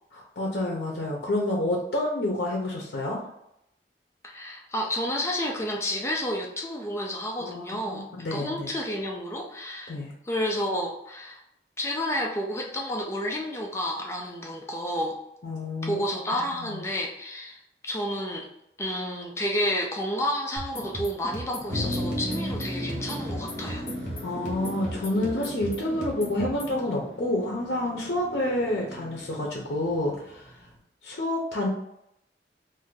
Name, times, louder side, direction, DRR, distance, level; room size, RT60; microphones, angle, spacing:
voice 1, 0.1-3.2 7.4-8.7 9.9-10.1 15.4-16.1 16.4-16.8 24.2-30.5 31.0-31.7, left 1 dB, 65° left, -2 dB, 0.6 m, -29 dB
voice 2, 4.2-10.0 10.2-11.4 11.8-15.2 15.8-17.6 17.8-18.5 18.8-23.8, equal, 15° left, 0 dB, 0.3 m, -30 dB
sound 1, 20.6-26.8, equal, 45° left, 1.0 m, -37 dB
Motor vehicle (road), 21.7-30.7, equal, 35° right, 0.9 m, -36 dB
2.6 x 2.5 x 3.7 m, 0.79 s
head